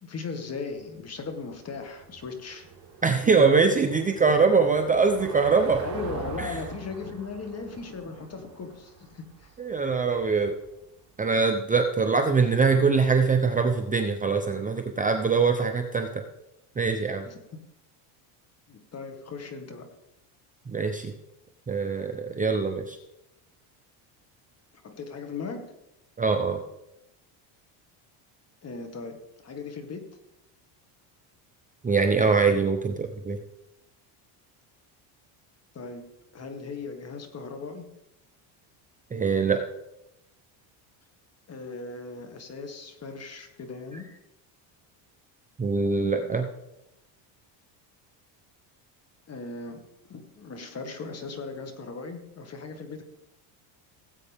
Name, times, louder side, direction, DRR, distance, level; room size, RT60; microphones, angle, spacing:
voice 1, 0.0-2.7 5.8-9.5 17.2-17.4 18.7-19.9 24.8-25.7 28.6-30.1 35.7-36.1 36.3-37.9 41.5-44.1 49.3-53.0, left 4 dB, 30° left, 6 dB, 1.9 m, -38 dB
Car passing by / Engine, 0.7-11.3, right 6 dB, 35° right, 5.1 m, -43 dB
voice 2, 3.0-5.8 6.4-6.5 9.6-10.5 11.2-16.2 16.8-17.3 20.7-21.1 21.7-23.0 26.2-26.6 31.8-33.4 39.1-39.6 45.6-46.5, right 4 dB, 15° right, 5 dB, 0.7 m, -23 dB
18.0 x 8.3 x 3.6 m, 0.88 s
cardioid pair, 130°, 48 cm